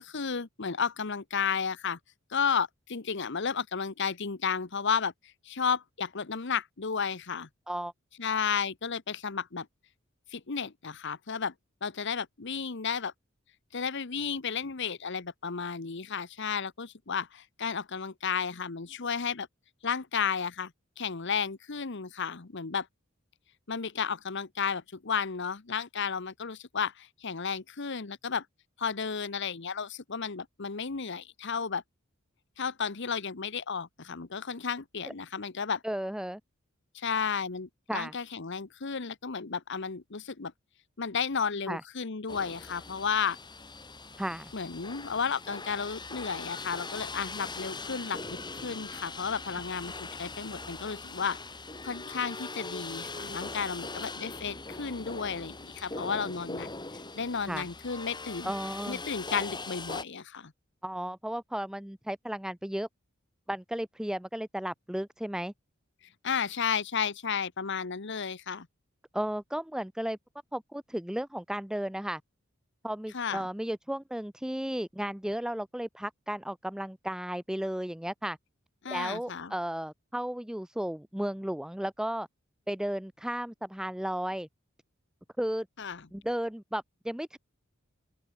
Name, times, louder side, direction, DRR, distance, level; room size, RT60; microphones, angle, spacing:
voice 1, 0.0-2.0 2.3-5.1 5.4-7.5 8.2-9.7 10.3-11.5 11.8-13.1 13.7-19.5 19.8-20.7 21.0-22.9 23.7-28.4 28.8-31.8 32.6-35.8 36.9-40.5 41.0-43.4 44.5-51.4 51.8-56.7 57.1-58.5 58.9-60.5 66.2-68.7 73.1-73.5 78.8-79.5 85.8-86.1, left 6 dB, 60° left, 1.1 m, -33 dB
voice 2, 35.8-36.4 37.9-38.1 41.7-41.8 44.2-44.5 57.5-57.7 58.4-59.0 60.8-62.9 63.5-65.5 69.1-70.2 70.5-72.2 72.8-78.4 78.9-82.3 82.7-84.5 85.4-85.7 86.1-87.4, right 1 dB, 5° right, 0.5 m, -34 dB
sound 1, 42.3-60.0, left 3 dB, 20° left, 3.5 m, -41 dB
open air
head